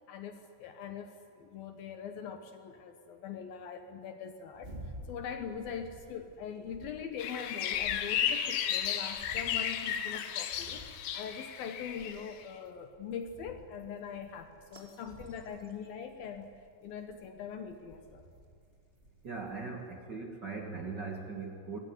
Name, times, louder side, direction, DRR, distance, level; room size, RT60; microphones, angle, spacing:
voice 1, 0.1-16.5 16.8-18.2, left 7 dB, 65° left, 7 dB, 2.7 m, -42 dB
sound 1, 4.5-19.7, right 1 dB, 20° right, 2.1 m, -53 dB
sound 2, 7.2-12.4, left 9 dB, 85° left, 3.5 m, -34 dB
voice 2, 19.2-21.8, right 4 dB, 75° right, 2 dB, 1.0 m, -40 dB
25.0 x 19.0 x 9.7 m, 2.3 s
omnidirectional pair, 5.0 m